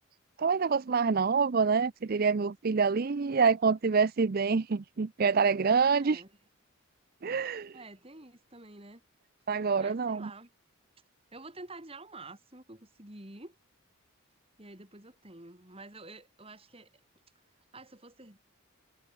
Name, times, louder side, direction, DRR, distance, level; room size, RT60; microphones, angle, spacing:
voice 1, 0.4-6.2 7.2-7.8 9.5-10.3, right 5 dB, 45° right, 0.5 m, -26 dB
voice 2, 5.9-6.3 7.7-9.0 9.8-10.5 11.3-13.6 14.6-16.9 17.7-18.4, right 2 dB, 25° right, 3.8 m, -49 dB
head